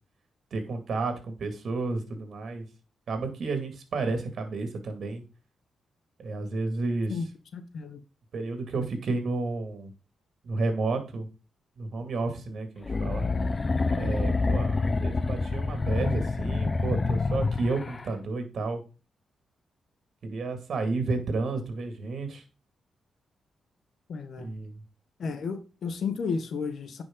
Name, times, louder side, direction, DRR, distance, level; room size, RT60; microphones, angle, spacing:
voice 1, 0.5-2.7 3.1-5.2 6.2-7.2 8.3-9.9 10.4-11.3 11.8-13.2 14.0-18.8 20.2-22.4 24.4-24.8, right 3 dB, 60° right, 2.2 m, -31 dB
voice 2, 7.5-8.0 24.1-24.5 25.2-27.0, left 5 dB, 65° left, 1.1 m, -33 dB
sound 1, 12.8-18.1, left 3 dB, 30° left, 0.5 m, -27 dB
9.7 x 5.2 x 3.8 m
cardioid pair, 90°, 0 cm